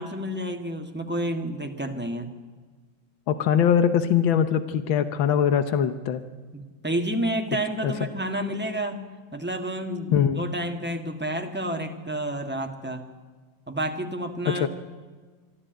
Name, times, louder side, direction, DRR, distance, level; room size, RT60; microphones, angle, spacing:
voice 1, 0.0-2.3 6.5-9.0 9.3-13.1 13.7-14.7, right 1 dB, 5° right, 4 dB, 1.5 m, -30 dB
voice 2, 3.3-6.2 7.8-7.9 10.1-10.4 14.5-14.7, left 8 dB, 90° left, 11 dB, 1.7 m, -22 dB
24.0 x 13.5 x 9.1 m, 1.4 s
omnidirectional pair, 2.1 m